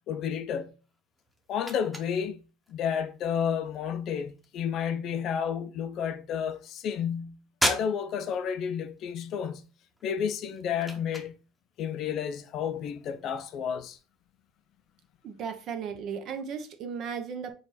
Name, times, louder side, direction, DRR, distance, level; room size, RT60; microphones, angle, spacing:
voice 1, 0.1-0.7 1.5-2.4 2.7-9.6 10.0-11.4 11.8-14.0, left 8 dB, 55° left, 0.5 m, -31 dB
sound 1, 0.8-15.2, equal, ahead, 0.9 m, -40 dB
voice 2, 15.2-17.5, right 6 dB, 50° right, 0.8 m, -35 dB
4.5 x 2.5 x 4.1 m
supercardioid pair, 110°, 0 cm